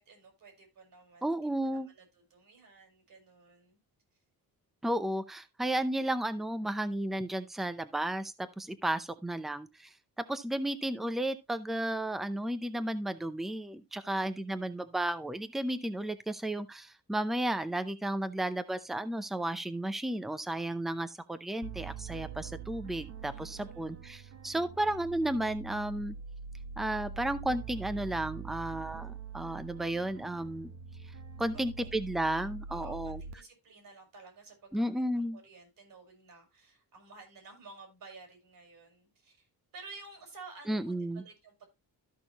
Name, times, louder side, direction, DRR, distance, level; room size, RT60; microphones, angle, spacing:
voice 1, 0.0-1.4 1.7-2.0 2.3-3.8 14.0-14.4 23.3-24.0 31.5-32.0 32.7-39.5 39.7-41.7, right 3 dB, 60° right, 5.1 m, -53 dB
voice 2, 1.2-1.9 4.8-9.9 10.3-26.2 26.8-30.7 31.4-33.2 34.7-35.4 40.7-41.2, right 1 dB, ahead, 0.6 m, -33 dB
sound 1, 21.6-33.3, right 6 dB, 45° right, 1.0 m, -44 dB
13.5 x 6.1 x 2.9 m
wide cardioid pair, 175°, 37 cm